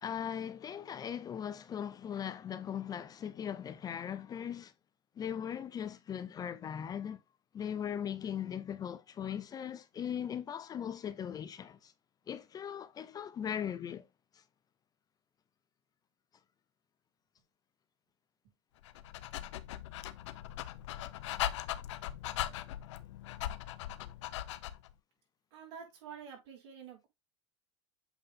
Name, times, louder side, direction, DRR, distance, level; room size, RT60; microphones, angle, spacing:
voice 1, 0.0-4.7 5.2-7.2 7.5-11.9 12.3-14.0, left 9 dB, 25° left, 0.6 m, -39 dB
Dog, 18.8-24.9, left 13 dB, 80° left, 0.7 m, -39 dB
voice 2, 25.5-27.1, right 7 dB, 70° right, 4.7 m, -48 dB
8.0 x 3.7 x 3.8 m
supercardioid pair, 120°, 15 cm